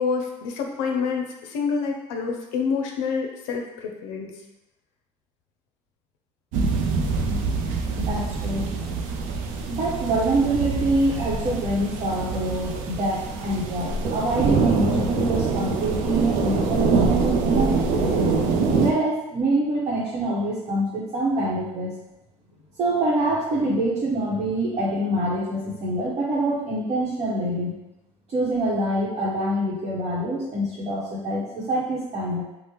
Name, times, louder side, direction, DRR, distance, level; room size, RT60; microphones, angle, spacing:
voice 1, 0.0-4.3, left 5 dB, 90° left, 2 dB, 0.5 m, -27 dB
sound 1, 6.5-18.9, right 4 dB, 75° right, 0.4 m, -24 dB
voice 2, 8.0-8.7 9.7-18.3 18.8-21.9 22.8-27.7 28.3-32.4, right 1 dB, 45° right, -8 dB, 0.9 m, -25 dB
3.3 x 2.0 x 2.9 m, 0.92 s
supercardioid pair, 95°, 13 cm